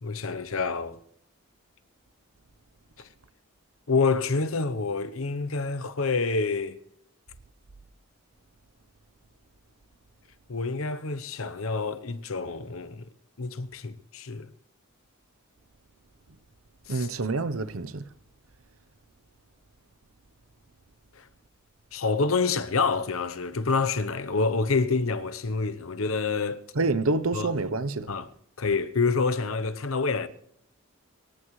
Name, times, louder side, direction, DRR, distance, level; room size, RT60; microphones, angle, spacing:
voice 1, 0.0-1.0 3.0-3.1 3.9-6.8 10.5-13.1 13.4-14.5 16.9-17.1 21.1-21.3 21.9-26.6 27.3-27.5 28.1-28.2 28.6-30.3, left 4 dB, 80° left, 0.9 m, -27 dB
voice 2, 16.9-18.1 26.7-28.1, right 3 dB, 85° right, 0.9 m, -27 dB
25.0 x 14.5 x 3.2 m
head